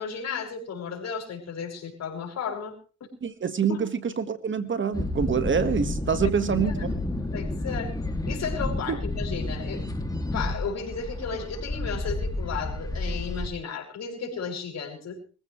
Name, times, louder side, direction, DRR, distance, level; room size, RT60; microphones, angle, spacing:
voice 1, 0.0-2.7 3.7-3.8 6.6-6.9 7.3-7.9 8.3-9.8 10.2-15.2, left 6 dB, 60° left, 1 dB, 6.0 m, -34 dB
voice 2, 3.2-6.7 8.9-9.0, right 6 dB, 40° right, 11 dB, 1.6 m, -26 dB
sound 1, 4.9-13.5, left 2 dB, 10° left, 2.4 m, -31 dB
24.0 x 15.5 x 3.2 m, 0.38 s
cardioid pair, 90°, 30 cm